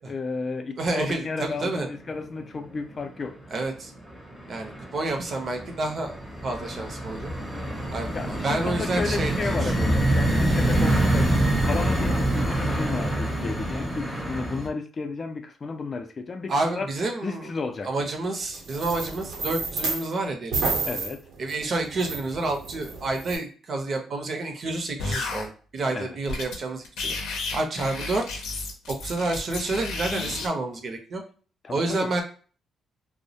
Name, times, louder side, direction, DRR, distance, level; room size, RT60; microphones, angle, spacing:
voice 1, 0.0-3.4 8.1-16.9 17.2-18.1 20.8-21.2 25.9-26.2 31.6-32.1, left 4 dB, 40° left, 0.4 m, -33 dB
voice 2, 0.8-1.9 3.5-3.9 4.5-6.2 6.4-7.3 7.9-9.9 16.5-17.5 17.8-20.6 21.4-27.1 27.5-28.2 29.0-31.2 31.7-32.2, right 2 dB, 50° right, 0.6 m, -29 dB
sound 1, 1.6-2.2 2.4-3.2 3.6-14.7, right 1 dB, ahead, 0.6 m, -26 dB
sound 2, 18.4-20.1 20.5-23.4, right 4 dB, 80° right, 0.8 m, -31 dB
sound 3, 25.0-25.5 26.3-26.6 26.8-30.5, left 3 dB, 85° left, 0.6 m, -32 dB
2.2 x 2.0 x 2.7 m
cardioid pair, 90°, 0 cm